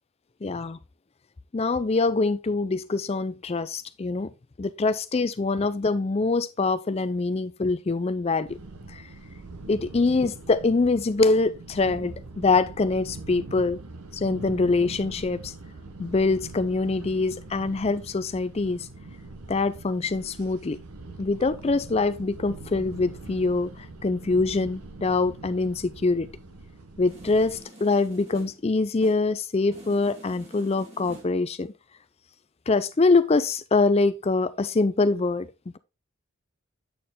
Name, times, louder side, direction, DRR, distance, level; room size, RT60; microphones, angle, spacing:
voice 1, 0.4-0.8 1.5-4.3 4.6-8.6 8.9-9.0 9.7-13.8 14.1-15.5 16.0-18.9 19.5-20.8 21.2-23.7 24.0-26.3 27.0-31.7 32.7-35.8, left 3 dB, 25° left, 0.4 m, -24 dB
sound 1, 8.5-27.6, right 2 dB, 85° right, 0.9 m, -42 dB
sound 2, 27.0-28.8 29.0-29.4 29.7-31.5, equal, 30° right, 1.7 m, -47 dB
8.4 x 4.4 x 3.6 m
head